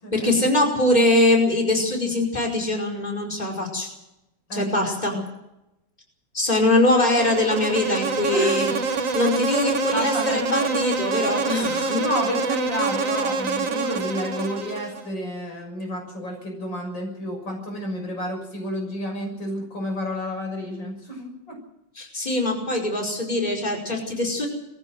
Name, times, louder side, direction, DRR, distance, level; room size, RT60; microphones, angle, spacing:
voice 1, 0.1-3.9 4.5-5.1 6.3-8.7 9.1-12.0 22.0-24.5, left 1 dB, 20° left, 0 dB, 5.3 m, -22 dB
voice 2, 4.5-5.2 8.3-8.7 9.9-11.2 12.0-21.6, equal, 80° left, 2 dB, 7.3 m, -31 dB
Insect, 6.8-15.1, right 4 dB, 90° right, 2.5 m, -26 dB
22.5 x 15.0 x 7.8 m, 0.89 s
omnidirectional pair, 2.0 m